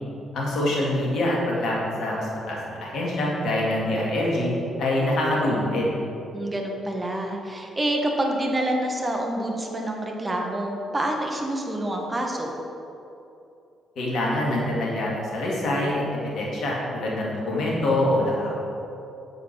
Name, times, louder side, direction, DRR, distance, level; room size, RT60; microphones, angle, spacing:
voice 1, 0.3-4.5 4.8-5.9 14.0-18.6, left 1 dB, 60° left, -4 dB, 2.4 m, -25 dB
voice 2, 6.3-12.6, right 1 dB, 25° right, 1 dB, 1.5 m, -27 dB
9.0 x 8.0 x 4.7 m, 2.8 s
figure-of-eight pair, 40°, 0 cm